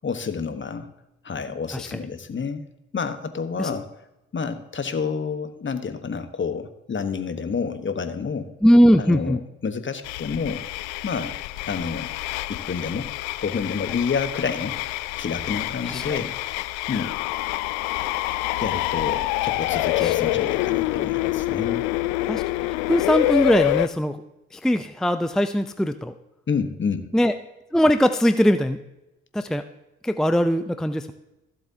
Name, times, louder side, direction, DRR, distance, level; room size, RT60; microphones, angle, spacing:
voice 1, 0.0-0.9 1.2-2.6 2.9-3.9 4.3-8.5 9.0-10.6 11.0-11.3 11.7-12.1 12.5-13.1 13.4-14.8 15.2-16.4 16.9-17.2 18.6-21.8 26.5-27.1, left 5 dB, 35° left, 10 dB, 1.3 m, -29 dB
voice 2, 8.6-9.4 15.8-16.3 20.0-20.1 22.3-24.2 24.5-26.1 27.1-27.3 27.7-28.8 29.3-29.6 30.0-31.1, equal, ahead, 10 dB, 0.6 m, -20 dB
sound 1, 10.0-23.9, left 18 dB, 75° left, 0.5 m, -26 dB
15.5 x 7.7 x 2.8 m, 0.95 s
hypercardioid pair, 45°, 33 cm